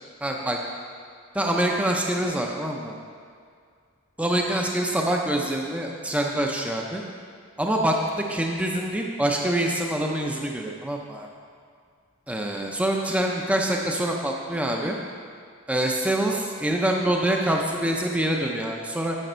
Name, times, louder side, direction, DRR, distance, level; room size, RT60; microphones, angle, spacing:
voice 1, 0.2-0.6 1.3-3.0 4.2-7.0 7.6-11.3 12.3-15.0 15.7-19.2, right 1 dB, 5° right, 0 dB, 0.5 m, -25 dB
9.2 x 6.4 x 4.4 m, 2.1 s
head